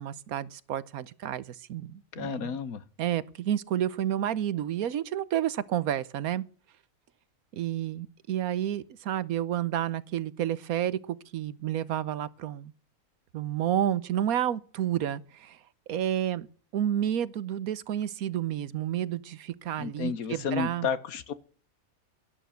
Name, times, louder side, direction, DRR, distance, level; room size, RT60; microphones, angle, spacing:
voice 1, 0.0-2.6 3.0-6.5 7.5-12.7 13.3-15.6 15.9-16.5 16.7-20.9, right 11 dB, 80° right, 1.3 m, -30 dB
voice 2, 2.1-2.8 19.8-21.3, left 6 dB, 85° left, 1.5 m, -32 dB
11.5 x 11.5 x 8.3 m
omnidirectional pair, 1.5 m